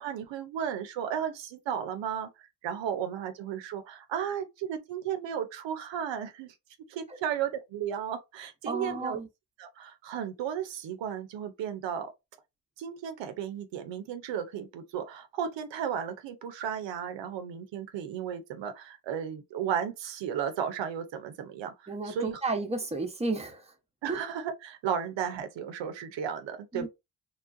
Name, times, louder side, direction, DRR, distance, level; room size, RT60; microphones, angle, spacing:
voice 1, 0.0-6.5 6.9-9.2 9.6-12.1 12.8-22.4 24.0-26.9, right 8 dB, 80° right, 0.7 m, -34 dB
voice 2, 8.6-9.3 21.9-23.7 24.1-24.2 26.7-26.9, right 3 dB, 15° right, 0.9 m, -32 dB
3.2 x 2.3 x 2.6 m
supercardioid pair, 50°, 44 cm